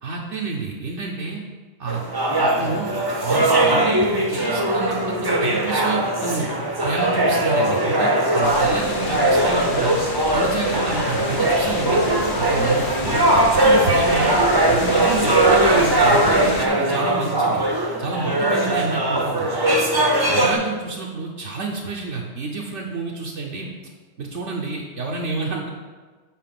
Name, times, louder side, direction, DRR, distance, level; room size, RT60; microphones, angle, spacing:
voice 1, 0.0-1.4 1.8-2.0 2.4-2.9 3.2-6.5 6.8-10.0 10.3-12.0 12.4-14.3 14.7-17.6 18.0-19.6 20.3-23.7 24.2-25.7, right 4 dB, 65° right, -1 dB, 1.1 m, -29 dB
sound 1, 1.9-20.5, right 1 dB, 20° right, 0.7 m, -20 dB
sound 2, 8.4-16.7, left 3 dB, 50° left, 0.8 m, -30 dB
7.4 x 4.1 x 5.8 m, 1.4 s
omnidirectional pair, 1.3 m